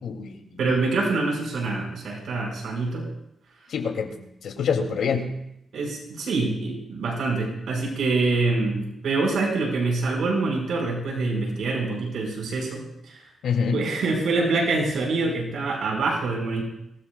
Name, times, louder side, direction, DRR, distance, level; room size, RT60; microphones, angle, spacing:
voice 1, 0.0-0.6 3.7-4.2 4.4-5.3 13.4-13.8, left 6 dB, 85° left, 2 dB, 2.7 m, -26 dB
voice 2, 0.6-3.1 5.7-12.8 13.1-13.2 13.7-16.6, right 3 dB, 75° right, 0 dB, 5.1 m, -25 dB
24.5 x 19.5 x 2.4 m, 0.80 s
wide cardioid pair, 150°, 0 cm